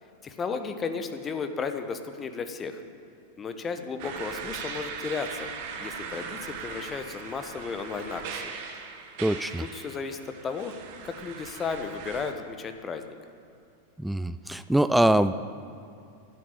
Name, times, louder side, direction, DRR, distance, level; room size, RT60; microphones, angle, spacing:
voice 1, 0.2-2.8 3.4-5.5 5.8-8.5 9.6-10.7 11.0-13.1, left 5 dB, 20° left, 8 dB, 1.1 m, -34 dB
sound 1, 4.0-12.3, right 6 dB, 45° right, 1.3 m, -39 dB
voice 2, 9.2-9.6 14.0-15.3, right 1 dB, 5° right, 13 dB, 0.3 m, -23 dB
12.0 x 9.8 x 8.3 m, 2.5 s
figure-of-eight pair, 90°, 0 cm